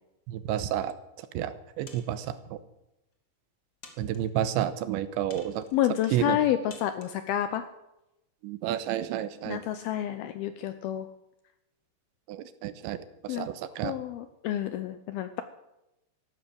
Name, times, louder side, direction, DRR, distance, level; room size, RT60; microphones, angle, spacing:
voice 1, 0.3-2.6 4.0-5.7 6.1-6.4 8.4-9.6 12.3-14.0, right 11 dB, 90° right, 13 dB, 3.2 m, -31 dB
sound 1, 1.9-2.4 3.1-3.2 3.8-4.5 5.3-5.8 6.7-7.2, left 4 dB, 55° left, 1.1 m, -51 dB
voice 2, 5.7-7.6 9.5-11.1 13.3-13.5 13.8-15.4, left 11 dB, 80° left, 11 dB, 2.3 m, -29 dB
14.5 x 12.0 x 7.8 m, 0.90 s
omnidirectional pair, 5.2 m